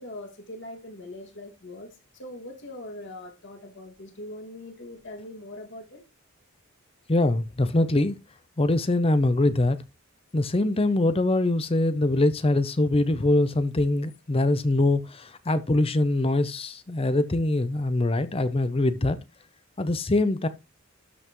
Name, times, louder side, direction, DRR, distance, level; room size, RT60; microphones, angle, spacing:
voice 1, 0.0-6.0, left 1 dB, 55° left, 2.1 m, -41 dB
voice 2, 7.1-8.2 8.6-9.8 10.3-19.2 19.8-20.5, left 2 dB, 25° left, 0.6 m, -23 dB
12.5 x 5.5 x 3.1 m
head